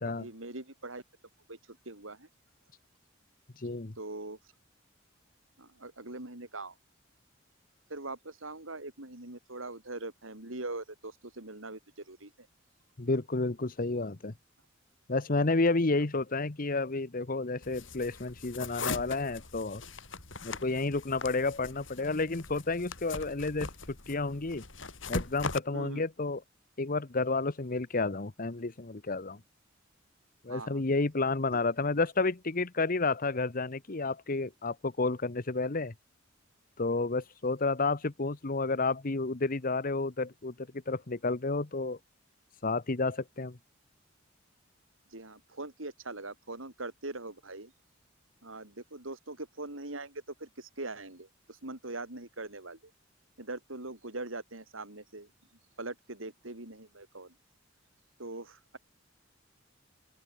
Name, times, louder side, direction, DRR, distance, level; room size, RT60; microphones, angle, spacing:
voice 1, 0.0-1.0 1.5-2.3 4.0-4.4 5.6-6.7 7.9-12.5 25.7-26.0 30.5-30.8 45.1-47.7 48.4-52.9 53.4-55.3 55.8-57.3 58.2-58.8, right 2 dB, 85° right, 4.7 m, -42 dB
voice 2, 3.6-3.9 13.0-14.3 15.1-19.8 20.4-24.6 25.1-26.4 26.8-29.4 30.4-35.9 36.8-42.0 42.6-43.6, left 3 dB, 45° left, 1.1 m, -31 dB
sound 1, 17.6-25.6, left 3 dB, 70° left, 5.9 m, -40 dB
open air
head